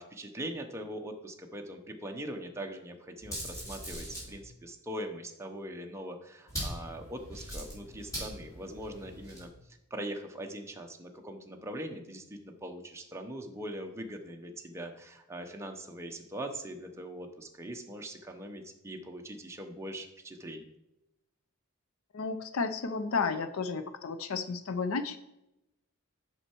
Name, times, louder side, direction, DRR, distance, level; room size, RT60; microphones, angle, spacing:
voice 1, 0.0-9.5 9.9-20.7, right 1 dB, 15° right, 3 dB, 0.8 m, -41 dB
sound 1, 3.2-4.3 6.5-9.5, right 1 dB, 15° left, 3.2 m, -41 dB
voice 2, 22.1-25.2, left 4 dB, 70° left, 10 dB, 0.5 m, -32 dB
7.9 x 5.6 x 4.5 m, 0.87 s
head